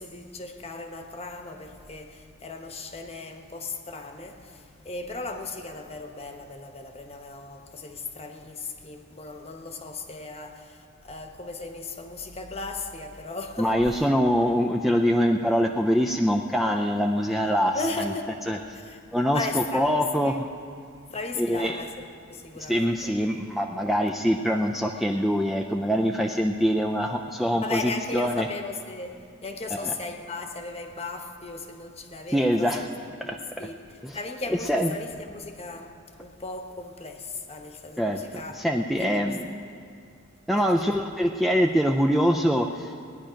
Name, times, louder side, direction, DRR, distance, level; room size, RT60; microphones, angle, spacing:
voice 1, 0.0-14.1 14.5-14.6 17.7-18.4 18.7-19.0 19.3-20.4 21.1-23.1 27.6-32.8 33.2-35.9 36.2-38.6 39.0-39.4 40.5-41.0, left 3 dB, 30° left, 1.0 m, -37 dB
voice 2, 13.6-17.8 18.5-18.6 19.1-20.5 21.4-21.8 22.7-28.5 29.8-29.9 32.3-32.8 33.3-33.4 34.0-34.2 34.7-34.9 38.0-38.2 38.6-39.5 40.5-42.9, equal, ahead, 0.4 m, -24 dB
19.0 x 10.0 x 5.1 m
head